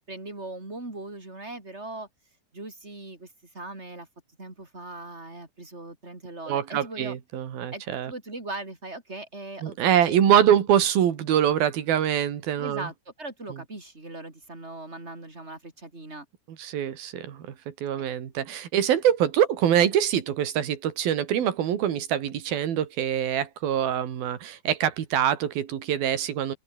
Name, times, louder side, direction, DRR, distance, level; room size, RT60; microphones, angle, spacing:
voice 1, 0.1-2.1 2.5-4.1 4.4-7.2 7.7-10.6 12.6-16.3 18.0-18.1, right 2 dB, 15° right, 4.7 m, -39 dB
voice 2, 6.5-8.1 9.6-12.9 16.6-26.6, right 10 dB, 80° right, 4.1 m, -24 dB
open air
omnidirectional pair, 4.2 m